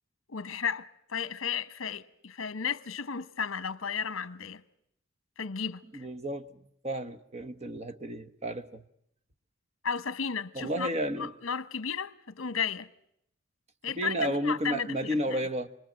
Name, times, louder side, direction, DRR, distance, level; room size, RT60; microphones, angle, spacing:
voice 1, 0.3-4.6 5.4-6.1 9.8-10.9 11.2-12.9 13.8-15.4, left 6 dB, 80° left, 1.0 m, -34 dB
voice 2, 5.9-6.6 6.8-8.8 10.5-11.3 14.0-15.7, right 1 dB, 35° right, 1.3 m, -32 dB
28.5 x 21.5 x 7.5 m
head